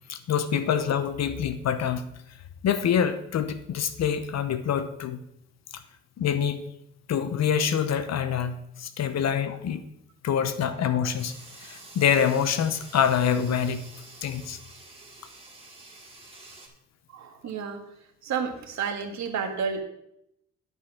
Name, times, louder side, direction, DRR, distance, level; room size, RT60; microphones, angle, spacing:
voice 1, 0.1-2.0 2.6-5.2 5.7-5.8 6.2-6.7 7.1-9.8 10.2-13.8 14.2-14.6, left 8 dB, 60° left, 11 dB, 0.9 m, -26 dB
sound 1, 11.2-16.7, right 2 dB, 20° right, 2.4 m, -48 dB
voice 2, 17.1-17.8 18.2-19.8, right 6 dB, 65° right, 4 dB, 1.8 m, -31 dB
11.0 x 5.3 x 5.9 m, 0.78 s
cardioid pair, 90°, 30 cm